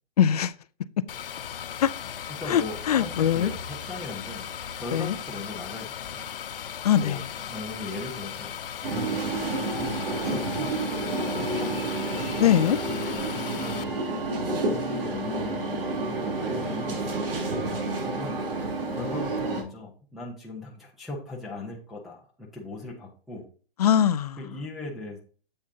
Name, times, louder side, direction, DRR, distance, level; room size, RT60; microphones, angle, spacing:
voice 1, 0.2-0.5 1.0-1.1 1.8-1.9 2.5-3.5 4.9-5.1 6.8-7.2 12.4-12.8 23.8-24.4, left 9 dB, 40° left, 0.4 m, -22 dB
sound 1, 1.1-13.8, left 8 dB, 65° left, 0.8 m, -37 dB
voice 2, 2.3-4.5 4.8-6.3 7.0-8.5 8.9-12.1 12.9-13.8 14.3-17.3 18.0-18.4 18.9-23.4 24.4-25.2, left 2 dB, ahead, 0.8 m, -39 dB
sound 2, 8.8-19.6, right 2 dB, 65° right, 3.3 m, -29 dB
8.0 x 7.7 x 2.7 m
hypercardioid pair, 160°, 30 cm